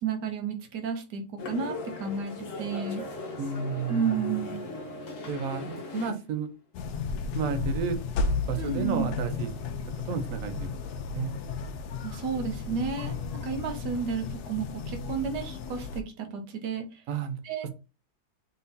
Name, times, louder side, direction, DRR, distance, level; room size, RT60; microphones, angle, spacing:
voice 1, 0.0-2.3 2.6-3.0 3.9-4.6 8.6-9.1 12.0-13.1 13.4-17.0 17.4-17.7, right 5 dB, 90° right, 1.5 m, -32 dB
sound 1, 1.4-6.2, left 3 dB, 55° left, 1.2 m, -38 dB
voice 2, 3.4-4.2 5.3-6.5 7.3-8.0 8.5-9.5 10.0-10.7 11.1-11.4 17.1-17.7, right 6 dB, 60° right, 1.0 m, -31 dB
sound 2, 6.7-16.0, left 4 dB, 75° left, 1.1 m, -33 dB
4.0 x 3.9 x 2.7 m
omnidirectional pair, 1.8 m